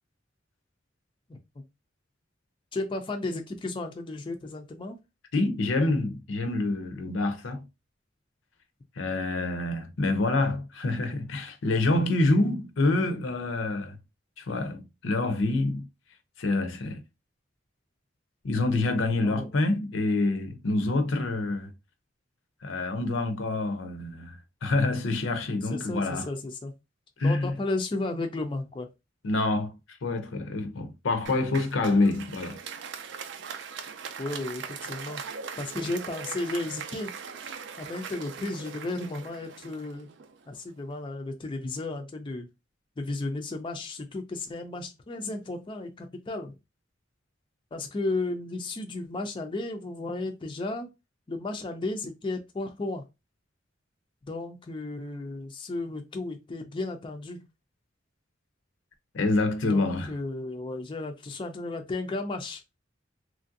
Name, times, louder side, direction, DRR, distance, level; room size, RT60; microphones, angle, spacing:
voice 1, 2.7-5.0 19.2-19.5 25.7-26.7 27.2-28.9 34.2-35.2 35.6-37.1 37.8-40.1 40.5-42.5 43.0-46.6 47.7-50.9 51.3-53.0 54.3-57.4 59.7-62.6, left 2 dB, 25° left, 0.4 m, -34 dB
voice 2, 5.3-7.6 9.0-14.0 14.4-15.9 16.4-17.0 18.4-21.7 22.6-26.3 27.2-27.5 29.2-32.6 59.1-60.1, left 2 dB, 75° left, 0.6 m, -27 dB
Applause, 31.3-40.6, right 6 dB, 65° right, 0.4 m, -40 dB
3.0 x 2.5 x 2.5 m
head